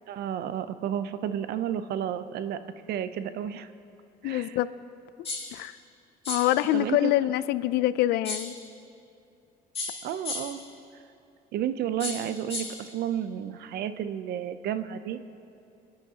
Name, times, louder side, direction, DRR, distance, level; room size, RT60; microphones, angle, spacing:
voice 1, 0.1-2.6 2.9-3.7 4.2-4.6 6.7-7.1 10.0-10.6 11.5-15.2, right 10 dB, 70° right, 12 dB, 0.6 m, -31 dB
voice 2, 4.2-4.7 5.5-5.8 6.3-8.5, left 15 dB, 80° left, 16 dB, 0.4 m, -25 dB
sound 1, 5.2-5.6 6.2-6.6 8.2-8.6 9.7-10.6 12.0-12.8, left 2 dB, 35° left, 3.2 m, -35 dB
24.5 x 9.9 x 2.8 m, 2.6 s
cardioid pair, 110°, 17 cm